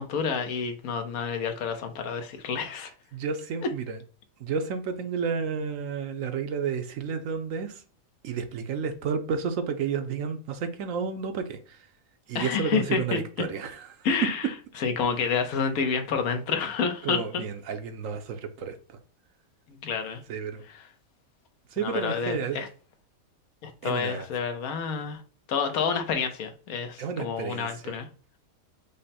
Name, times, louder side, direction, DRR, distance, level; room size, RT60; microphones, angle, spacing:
voice 1, 0.0-2.9 12.3-13.2 14.0-14.4 14.8-17.2 19.7-20.2 21.8-22.7 23.6-25.2 25.5-28.1, left 6 dB, 80° left, 1.2 m, -29 dB
voice 2, 3.1-4.0 4.4-7.8 8.2-11.9 12.3-14.1 17.0-19.0 20.3-20.6 21.7-22.6 23.8-24.3 27.0-27.9, right 6 dB, 70° right, 1.0 m, -31 dB
5.3 x 2.1 x 4.1 m
omnidirectional pair, 1.5 m